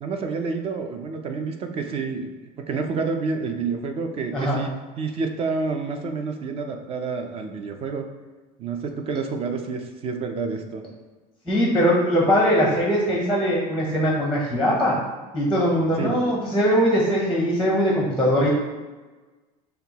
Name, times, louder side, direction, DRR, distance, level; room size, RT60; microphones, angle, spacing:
voice 1, 0.0-4.7 5.0-8.1 8.6-10.8 16.0-16.2, right 4 dB, 35° right, 5 dB, 0.4 m, -29 dB
voice 2, 4.3-4.7 11.5-14.9 15.3-18.5, equal, ahead, -4 dB, 0.7 m, -21 dB
5.7 x 2.3 x 2.8 m, 1.3 s
cardioid pair, 145°, 17 cm